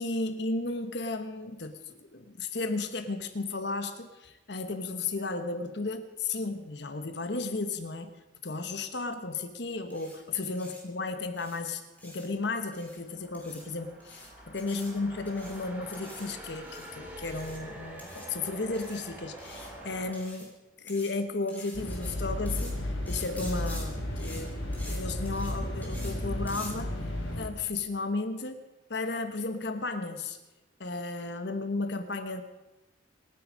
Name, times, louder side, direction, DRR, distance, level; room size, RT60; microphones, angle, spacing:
voice 1, 0.0-8.2 8.4-20.5 20.8-24.5 24.9-27.0 27.4-30.4 30.8-32.4, left 3 dB, 60° left, 8 dB, 1.1 m, -34 dB
sound 1, 9.9-10.2 10.5-10.8 11.4-11.6 12.0-12.3 12.7-13.0 13.3-13.6 14.0-14.3 14.6-14.9 15.3-15.6 15.9-16.3 16.6-16.9 17.3-17.6 18.0-18.3 18.7-19.0 19.4-19.7 20.1-20.5 20.9-21.1 21.5-22.1 22.5-22.7 23.1-23.8 24.2-24.4 24.7-25.0 25.2-25.5 25.8-26.1 26.5-26.7, left 1 dB, 10° left, 3.2 m, -47 dB
sound 2, 12.3-20.1, right 1 dB, 10° right, 3.2 m, -46 dB
sound 3, 21.7-27.5, left 1 dB, 85° left, 4.0 m, -33 dB
26.0 x 9.8 x 5.2 m, 1.1 s
head